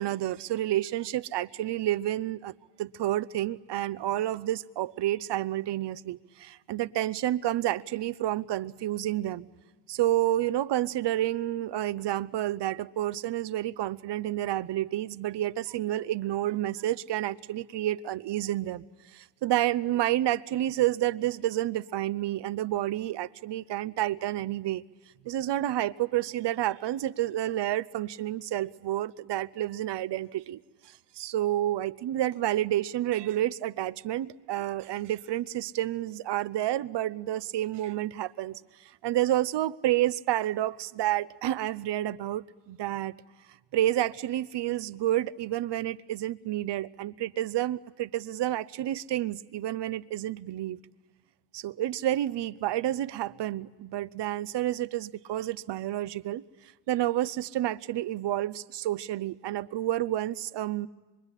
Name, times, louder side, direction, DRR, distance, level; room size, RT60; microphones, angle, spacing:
voice 1, 0.0-9.5 9.9-18.8 19.1-24.8 25.2-43.1 43.7-50.8 51.5-60.9, right 13 dB, 80° right, 0.8 m, -30 dB
25.5 x 23.0 x 9.8 m
cardioid pair, 90°, 42 cm